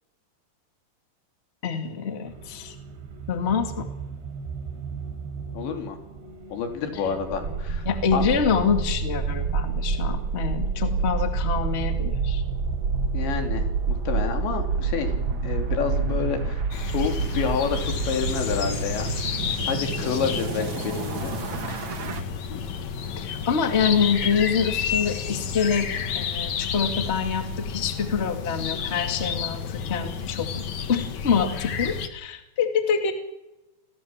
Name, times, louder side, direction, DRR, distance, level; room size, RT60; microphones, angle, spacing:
voice 1, 1.6-2.7 3.3-3.9 7.8-12.4 23.2-25.9 26.1-30.6 30.9-33.1, left 6 dB, 25° left, 6 dB, 1.5 m, -26 dB
sound 1, 2.3-16.5, right 5 dB, 80° right, 5.0 m, -37 dB
voice 2, 5.5-6.0 6.5-7.9 8.1-8.2 13.1-15.1 15.4-19.1 19.7-21.3 21.7-22.0 22.5-22.7, left 6 dB, 90° left, 5 dB, 5.3 m, -29 dB
sound 2, 7.3-22.2, right 4 dB, 60° right, 1.3 m, -28 dB
sound 3, 16.7-32.1, left 7 dB, 55° left, 2.3 m, -31 dB
29.0 x 20.0 x 7.4 m, 0.97 s
omnidirectional pair, 5.0 m